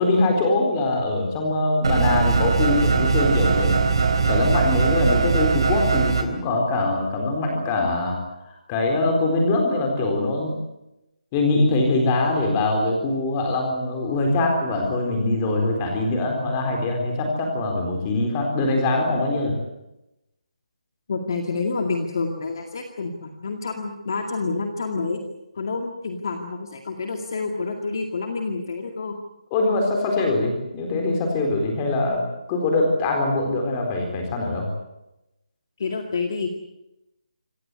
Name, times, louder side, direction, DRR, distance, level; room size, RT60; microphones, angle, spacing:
voice 1, 0.0-3.9 4.3-8.2 8.5-10.6 11.3-19.6 29.5-34.7, left 2 dB, 15° left, 2 dB, 4.1 m, -23 dB
sound 1, 1.8-6.2, right 5 dB, 45° right, 4.0 m, -20 dB
voice 2, 21.1-25.2 25.5-29.1 35.8-36.5, left 4 dB, 35° left, 4 dB, 2.2 m, -28 dB
26.5 x 16.5 x 9.8 m, 0.91 s
hypercardioid pair, 180°, 4 cm